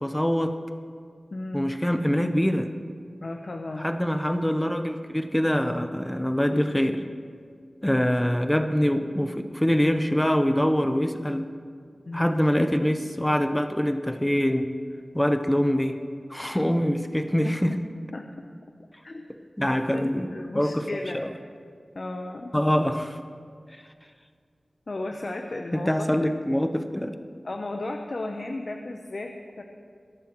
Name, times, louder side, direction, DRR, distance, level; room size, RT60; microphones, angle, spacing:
voice 1, 0.0-0.6 1.5-2.7 3.8-7.0 7.8-11.5 12.1-14.6 15.1-16.0 16.3-17.8 19.6-20.3 20.5-21.3 22.5-23.2 25.7-27.2, equal, 10° left, 8 dB, 0.7 m, -24 dB
voice 2, 1.3-1.7 3.2-3.9 12.1-12.3 17.4-17.8 18.1-18.5 19.0-19.2 19.7-21.2 21.9-22.5 24.9-26.2 27.4-29.6, left 2 dB, 55° left, 3 dB, 0.7 m, -35 dB
21.5 x 11.0 x 3.0 m, 2.1 s
wide cardioid pair, 85°, 0 cm